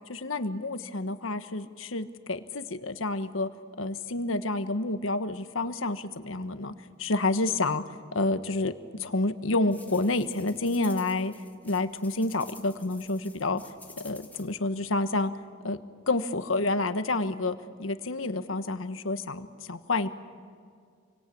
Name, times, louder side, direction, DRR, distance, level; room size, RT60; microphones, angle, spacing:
voice 1, 0.1-3.5 3.8-6.7 7.0-7.8 8.1-8.7 9.0-11.3 11.6-13.6 14.0-15.3 15.6-15.8 16.1-20.1, left 2 dB, 85° left, 10 dB, 1.4 m, -29 dB
sound 1, 9.7-14.5, left 3 dB, 10° left, 1.7 m, -51 dB
28.0 x 24.0 x 8.6 m, 2.2 s
head